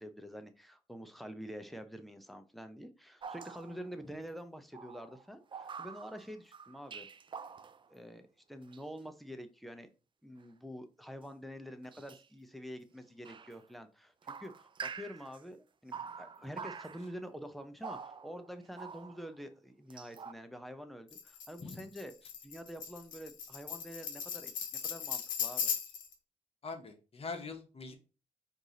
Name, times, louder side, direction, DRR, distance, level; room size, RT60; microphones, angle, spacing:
voice 1, 0.0-7.1 7.9-9.9 10.2-15.6 15.8-22.1 22.4-24.5 24.8-25.7, equal, ahead, 8 dB, 0.8 m, -47 dB
sound 1, 3.2-4.0 4.7-7.9 8.7-8.8 11.8-12.3 13.2-13.6 14.2-15.4 15.9-17.2 17.8-19.3 19.9-20.3, right 6 dB, 40° right, 0.4 m, -46 dB
Tambourine, 21.1-26.1, left 7 dB, 90° left, 0.6 m, -38 dB
voice 2, 26.6-27.9, left 4 dB, 45° left, 5 dB, 1.0 m, -43 dB
4.6 x 2.7 x 3.9 m, 0.34 s
cardioid pair, 60°, 13 cm